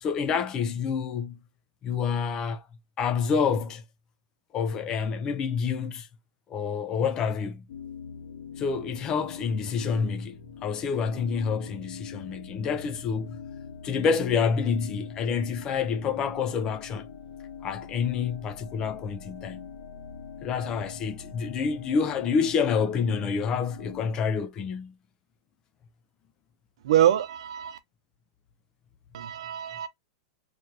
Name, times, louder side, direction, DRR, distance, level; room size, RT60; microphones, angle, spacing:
voice 1, 0.0-1.4 1.8-2.6 3.0-3.8 4.5-6.1 6.5-7.6 8.6-13.4 13.8-17.1 17.6-19.7 20.4-24.9, left 6 dB, 20° left, 0.4 m, -28 dB
sound 1, 7.7-24.0, left 7 dB, 70° left, 1.4 m, -43 dB
voice 2, 26.8-27.8 29.1-29.9, right 11 dB, 75° right, 0.8 m, -24 dB
3.2 x 2.5 x 4.4 m
supercardioid pair, 165°, 3 cm